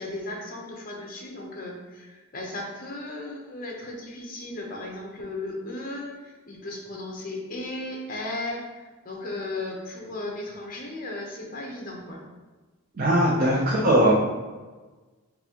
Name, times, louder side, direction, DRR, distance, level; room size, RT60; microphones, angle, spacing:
voice 1, 0.0-12.2 13.3-13.7, left 2 dB, 40° left, -1 dB, 0.7 m, -36 dB
voice 2, 13.0-14.1, right 1 dB, 45° right, -5 dB, 0.6 m, -20 dB
4.0 x 2.7 x 2.9 m, 1.3 s
head